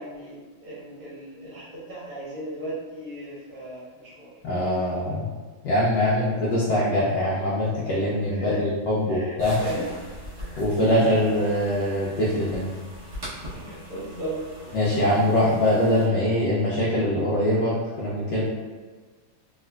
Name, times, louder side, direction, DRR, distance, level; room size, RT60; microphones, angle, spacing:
voice 1, 0.0-4.3 6.1-6.3 8.3-8.6 9.1-9.9 10.4-10.6 13.5-14.4 14.7-14.8 15.0-15.5 16.0-16.1, right 1 dB, 50° right, -9 dB, 1.3 m, -37 dB
voice 2, 4.4-5.3 5.6-9.6 10.6-12.7 14.7-18.4, left 1 dB, 70° left, -8 dB, 1.2 m, -23 dB
sound 1, 9.4-16.1, equal, 25° right, 0.6 m, -40 dB
3.4 x 2.8 x 2.3 m, 1.4 s
omnidirectional pair, 2.2 m